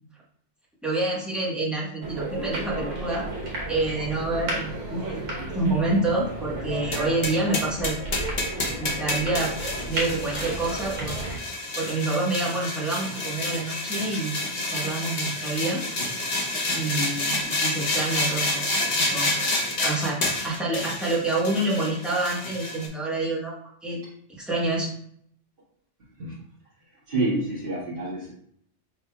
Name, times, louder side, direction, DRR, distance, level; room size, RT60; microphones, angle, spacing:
voice 1, 0.8-3.3 3.7-7.9 8.8-9.5 9.9-11.2 11.8-14.4 14.6-15.8 16.7-19.3 19.8-23.5 23.8-24.0 24.4-24.9, right 2 dB, ahead, -6 dB, 1.0 m, -27 dB
sound 1, 2.0-11.4, right 2 dB, 90° right, 1.4 m, -33 dB
sound 2, 6.9-22.9, left 2 dB, 40° left, 0.8 m, -29 dB
voice 2, 27.1-28.3, right 2 dB, 45° right, -11 dB, 1.8 m, -27 dB
5.1 x 3.7 x 2.2 m, 0.66 s
omnidirectional pair, 1.3 m